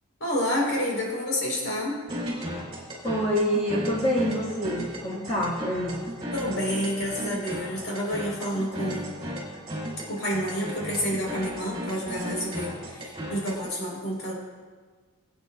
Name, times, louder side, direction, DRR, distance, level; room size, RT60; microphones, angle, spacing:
voice 1, 0.2-1.9 6.3-9.0 10.1-14.3, equal, 65° left, -3 dB, 3.8 m, -29 dB
sound 1, 2.1-13.7, equal, 25° right, 3.2 m, -35 dB
voice 2, 3.0-6.0, equal, 25° left, -6 dB, 1.5 m, -26 dB
20.0 x 8.9 x 2.3 m, 1.5 s
head